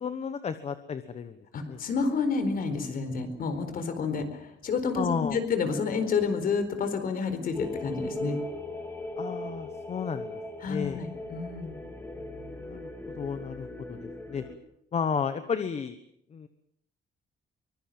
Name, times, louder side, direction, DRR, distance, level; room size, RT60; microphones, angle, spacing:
voice 1, 0.0-1.4 1.7-1.8 4.9-5.4 9.2-10.4 10.7-11.0 12.2-12.9 13.2-14.4 14.9-16.0 16.3-16.5, left 6 dB, 35° left, 10 dB, 1.2 m, -33 dB
voice 2, 1.5-8.4 10.6-11.7, left 5 dB, 50° left, 9 dB, 4.3 m, -29 dB
sound 1, 7.5-14.5, left 1 dB, 10° left, 2.9 m, -38 dB
24.0 x 23.0 x 7.7 m, 0.71 s
cardioid pair, 180°, 19 cm